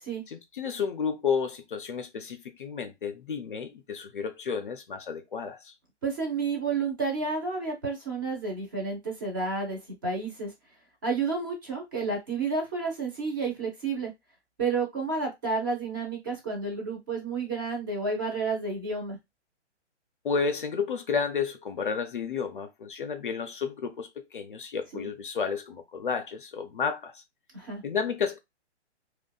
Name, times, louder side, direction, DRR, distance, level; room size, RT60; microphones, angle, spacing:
voice 1, 0.3-5.7 20.2-27.2 27.8-28.4, left 6 dB, 50° left, 0.4 m, -31 dB
voice 2, 6.0-10.5 11.0-14.1 14.6-19.2 24.9-25.1 27.5-27.8, right 4 dB, 20° right, 0.5 m, -31 dB
2.6 x 2.1 x 2.2 m
figure-of-eight pair, 130°, 35 cm